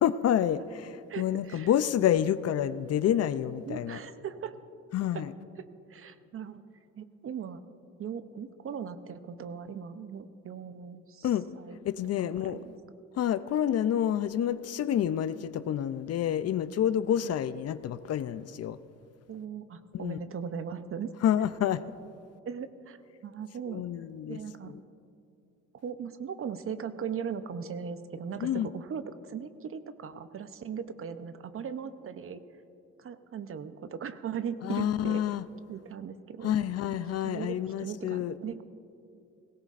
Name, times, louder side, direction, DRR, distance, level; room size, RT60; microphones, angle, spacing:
voice 1, 0.0-4.0 4.9-5.3 11.2-11.5 11.8-12.7 13.2-18.8 19.9-20.2 21.2-21.8 23.7-24.4 24.6-24.8 28.4-28.7 34.6-35.4 36.4-38.3, left 10 dB, 55° left, 14 dB, 0.5 m, -28 dB
voice 2, 1.1-1.7 3.7-4.5 5.1-5.3 5.9-6.6 7.0-7.6 8.0-11.3 11.6-11.8 12.2-12.8 17.2-17.3 19.3-21.1 22.5-23.8 24.3-24.7 25.7-32.4 33.0-35.2 35.7-36.6 37.2-38.6, right 7 dB, 45° right, 11 dB, 0.7 m, -38 dB
18.0 x 16.5 x 2.5 m, 2.6 s
cardioid pair, 90°, 30 cm